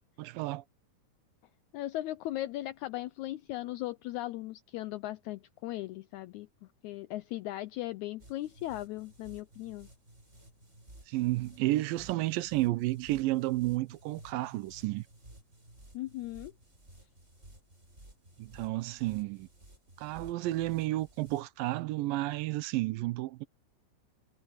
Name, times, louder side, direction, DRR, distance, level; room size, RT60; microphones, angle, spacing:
voice 1, 0.2-0.6 11.1-15.0 18.4-19.5 20.0-23.5, right 18 dB, 85° right, 2.5 m, -31 dB
voice 2, 1.7-6.5 6.8-9.9 15.9-16.5, left 15 dB, 85° left, 1.7 m, -38 dB
sound 1, 8.2-21.4, right 1 dB, 20° right, 7.0 m, -56 dB
omnidirectional pair, 3.9 m